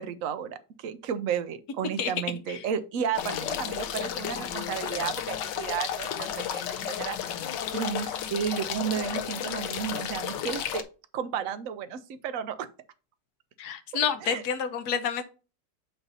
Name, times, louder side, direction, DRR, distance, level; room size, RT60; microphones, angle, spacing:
voice 1, 0.0-7.2 7.7-10.8 11.1-12.7 14.2-14.4, right 8 dB, 65° right, 0.9 m, -33 dB
sound 1, 3.2-10.8, left 9 dB, 85° left, 1.4 m, -33 dB
voice 2, 13.6-15.2, left 7 dB, 65° left, 1.3 m, -29 dB
8.0 x 2.7 x 5.3 m
omnidirectional pair, 1.9 m